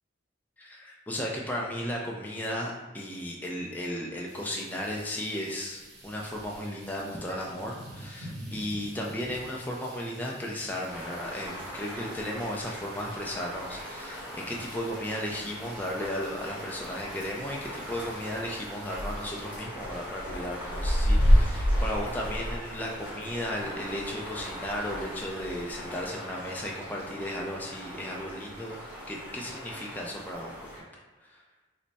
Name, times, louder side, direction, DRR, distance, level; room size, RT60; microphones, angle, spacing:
voice 1, 0.6-28.8 29.1-30.9 31.3-31.4, equal, 10° left, -2 dB, 0.3 m, -35 dB
sound 1, 4.3-19.6, right 1 dB, 60° right, 0.8 m, -49 dB
sound 2, 10.9-30.8, equal, 5° right, 0.9 m, -41 dB
sound 3, 19.8-24.6 24.9-26.1, equal, 45° left, 0.6 m, -26 dB
3.1 x 2.2 x 4.0 m, 1.3 s
head